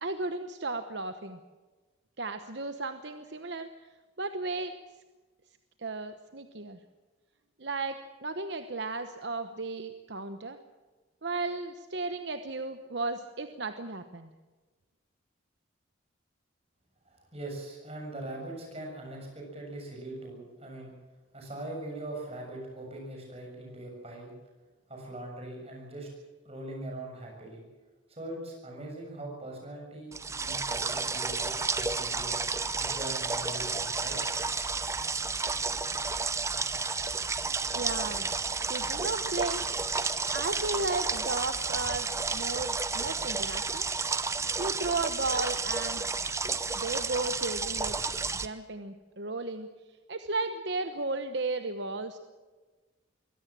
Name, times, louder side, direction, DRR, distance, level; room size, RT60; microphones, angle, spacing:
voice 1, 0.0-1.4 2.2-3.7 4.2-4.7 5.8-6.8 7.6-10.6 11.2-14.3 37.7-38.3 38.7-39.7 40.3-43.9 44.6-46.1 46.7-48.0 48.3-49.7 50.1-52.2, right 3 dB, 60° right, 8 dB, 1.0 m, -34 dB
voice 2, 17.1-20.9 21.3-24.3 24.9-26.1 26.4-27.6 28.1-32.4 32.8-34.2, right 1 dB, 30° right, 0 dB, 7.3 m, -41 dB
sound 1, 30.1-48.5, right 4 dB, 15° right, 0.7 m, -31 dB
23.5 x 17.0 x 7.5 m, 1.3 s
head